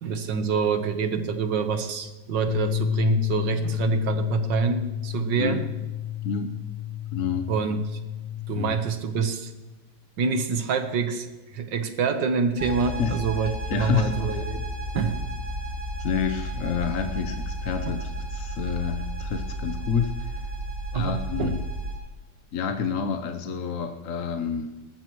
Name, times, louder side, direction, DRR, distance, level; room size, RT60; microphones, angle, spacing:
voice 1, 0.0-5.6 7.5-8.0 8.5-9.5 10.2-11.3 11.5-14.6 14.9-15.2 17.9-18.0 20.9-21.1 21.4-21.5, right 5 dB, 80° right, 8 dB, 1.8 m, -26 dB
sound 1, 2.5-8.7, left 13 dB, 80° left, 1.2 m, -30 dB
voice 2, 7.1-7.5 8.5-8.8 13.0-14.4 16.0-20.5 20.9-21.6 22.5-24.8, left 6 dB, 55° left, 6 dB, 1.1 m, -29 dB
sound 2, 12.6-22.0, equal, 50° right, 5.3 m, -33 dB
19.5 x 13.5 x 3.1 m, 1.1 s
omnidirectional pair, 1.9 m